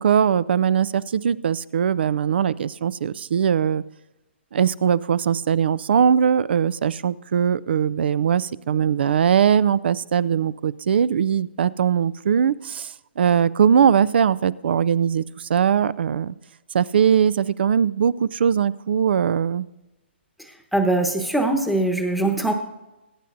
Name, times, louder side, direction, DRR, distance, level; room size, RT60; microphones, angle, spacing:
voice 1, 0.0-3.8 4.5-16.3 16.7-19.7, right 8 dB, 60° right, 20 dB, 0.4 m, -20 dB
voice 2, 20.4-22.5, right 2 dB, ahead, 4 dB, 1.1 m, -22 dB
22.0 x 9.6 x 2.6 m, 0.99 s
hypercardioid pair, 140°, 6 cm